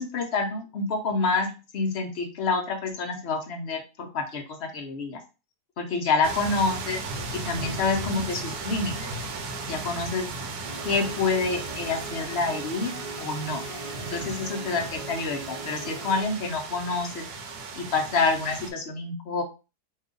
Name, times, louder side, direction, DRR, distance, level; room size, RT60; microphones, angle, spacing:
voice 1, 0.0-5.2 5.8-7.0 7.3-9.1 9.7-10.3 10.8-13.6 14.1-17.2 17.8-19.4, left 4 dB, 55° left, 2 dB, 0.7 m, -28 dB
sound 1, 6.2-18.7, right 3 dB, 75° right, 1.1 m, -36 dB
sound 2, 10.6-16.2, right 3 dB, 40° right, 0.7 m, -40 dB
2.8 x 2.3 x 3.7 m, 0.31 s
omnidirectional pair, 1.7 m